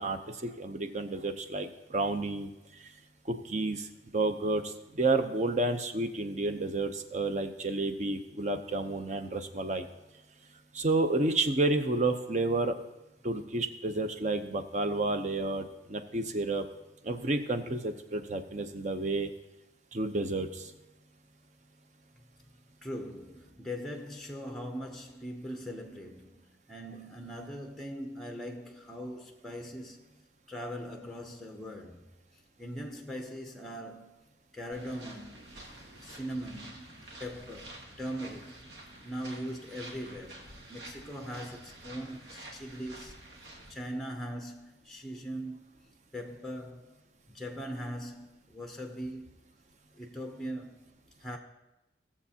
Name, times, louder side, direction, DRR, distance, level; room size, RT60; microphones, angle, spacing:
voice 1, 0.0-2.5 3.3-3.9 4.1-4.6 4.9-9.9 10.7-12.7 13.2-16.6 17.0-19.3 19.9-20.7, right 2 dB, 40° right, 0.7 m, -30 dB
voice 2, 22.8-30.0 30.5-32.1 32.6-34.2 34.5-35.4 36.0-36.9 37.2-38.6 39.0-43.1 43.7-45.6 46.1-46.9 47.3-49.3 50.0-50.8 51.2-51.4, equal, ahead, 0.6 m, -40 dB
sound 1, 34.7-43.7, right 1 dB, 80° right, 1.9 m, -49 dB
17.5 x 7.2 x 2.8 m
head